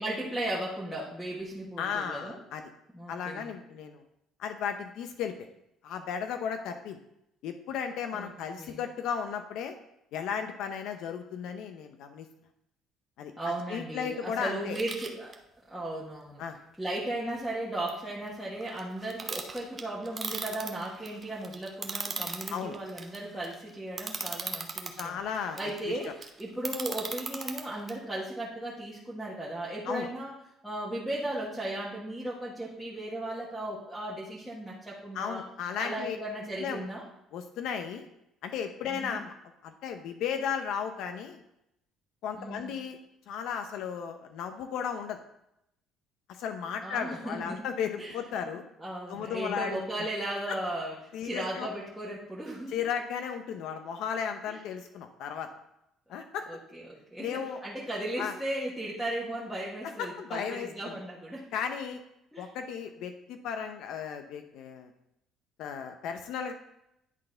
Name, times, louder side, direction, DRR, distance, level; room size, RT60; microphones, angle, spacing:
voice 1, 0.0-2.4 2.9-3.5 8.1-8.8 13.4-15.3 15.7-16.4 16.8-25.2 25.6-30.3 30.6-35.4 35.8-37.0 38.9-39.2 42.4-42.7 46.8-47.6 48.0-48.2 48.4-48.5 48.8-50.9 51.2-52.7 54.5-54.6 56.5-56.8 57.1-61.5 62.3-62.5, right 1 dB, ahead, -8 dB, 1.3 m, -36 dB
voice 2, 1.8-2.6 3.1-4.0 4.4-5.5 5.8-7.0 7.4-9.7 10.1-12.3 13.2-13.3 13.7-14.8 16.4-16.6 22.5-22.8 25.0-26.1 29.9-30.1 35.1-36.2 36.6-36.9 37.3-38.1 38.4-39.3 39.6-41.4 42.2-43.0 43.3-45.2 46.3-48.6 49.1-49.8 50.5-50.6 51.1-51.7 52.7-55.5 56.1-56.5 57.2-57.6 58.2-58.3 59.8-60.9 61.5-62.0 62.4-64.9 65.6-66.5, left 7 dB, 75° left, 7 dB, 0.7 m, -35 dB
sound 1, 14.7-15.3 17.9-18.0 18.3-25.0 25.3-27.9, right 4 dB, 25° right, 0.7 m, -38 dB
10.0 x 4.1 x 3.9 m, 0.80 s
cardioid pair, 135°, 0 cm